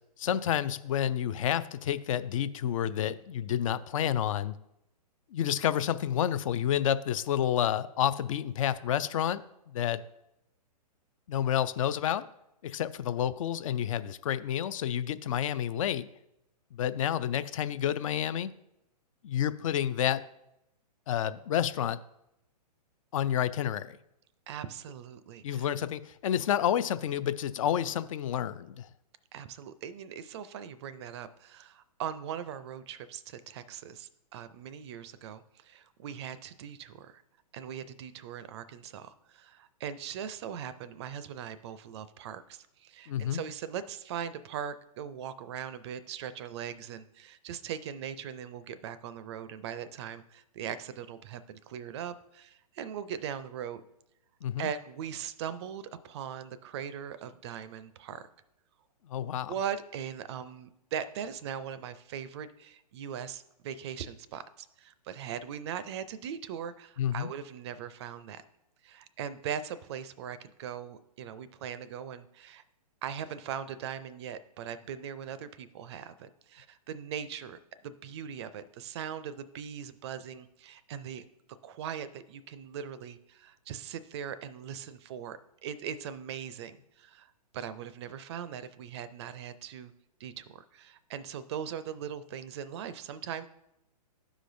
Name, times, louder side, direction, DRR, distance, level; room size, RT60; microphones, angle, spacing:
voice 1, 0.2-4.5 5.3-10.0 11.3-12.3 12.6-16.1 16.7-18.5 19.2-20.2 21.1-22.0 23.1-24.0 25.4-28.9 43.1-43.4 54.4-54.7 59.1-59.5 67.0-67.3, left 10 dB, 55° left, 15 dB, 0.4 m, -29 dB
voice 2, 24.5-25.7 29.3-37.2 37.5-53.8 54.6-58.3 59.2-68.4 68.8-72.6 73.0-77.6 77.8-81.2 81.6-89.9 90.2-93.5, right 8 dB, 40° right, 14 dB, 0.4 m, -40 dB
12.5 x 5.0 x 2.6 m, 0.84 s
hypercardioid pair, 135°, 21 cm